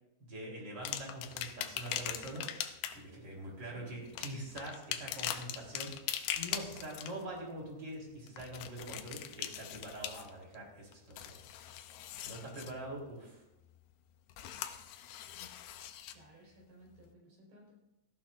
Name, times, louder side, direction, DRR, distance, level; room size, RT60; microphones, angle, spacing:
voice 1, 0.2-5.9 6.3-11.4 12.1-13.4 16.0-16.1, right 1 dB, 30° right, -2 dB, 4.1 m, -44 dB
sound 1, 0.8-3.1 4.1-7.2 8.3-10.5 10.9-12.8 14.3-16.2 17.0-17.1, left 11 dB, 85° left, 2.6 m, -41 dB
voice 2, 3.6-4.3 16.1-17.7, right 1 dB, 85° right, -2 dB, 6.9 m, -58 dB
17.5 x 14.5 x 2.6 m, 0.92 s
omnidirectional pair, 4.4 m